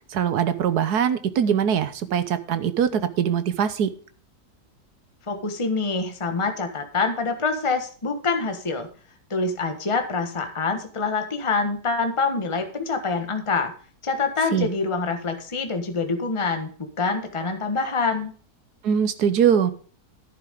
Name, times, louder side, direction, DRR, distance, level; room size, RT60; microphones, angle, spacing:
voice 1, 0.1-3.9 14.5-14.7 18.8-19.7, right 8 dB, 70° right, 12 dB, 1.5 m, -22 dB
voice 2, 5.3-8.9 9.3-13.7 14.0-18.3, left 4 dB, 20° left, 6 dB, 1.4 m, -26 dB
11.0 x 10.5 x 3.6 m, 0.42 s
omnidirectional pair, 1.8 m